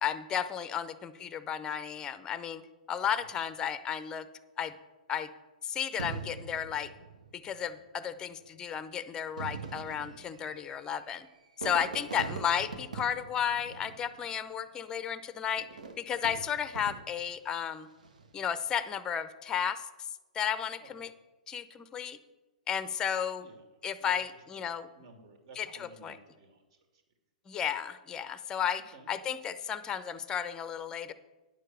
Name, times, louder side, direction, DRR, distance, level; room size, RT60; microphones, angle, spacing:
voice 1, 0.0-2.6 2.9-4.3 4.6-4.7 5.1-5.3 5.6-6.9 7.3-11.3 11.6-15.7 16.0-17.9 18.3-19.8 20.3-21.1 21.5-22.2 22.7-23.4 23.8-24.9 25.6-25.7 26.0-26.2 27.5-28.8 29.1-31.1, left 8 dB, 20° left, 13 dB, 0.7 m, -33 dB
Fireworks, 6.0-7.6 8.5-8.6 9.2-14.5 15.6-17.4 17.9-18.4, right 4 dB, 70° right, 1.3 m, -43 dB
voice 2, 23.4-27.0 28.4-29.1, right 3 dB, 45° right, 5 dB, 2.3 m, -56 dB
10.0 x 6.6 x 7.6 m, 1.2 s
figure-of-eight pair, 115°, 4 cm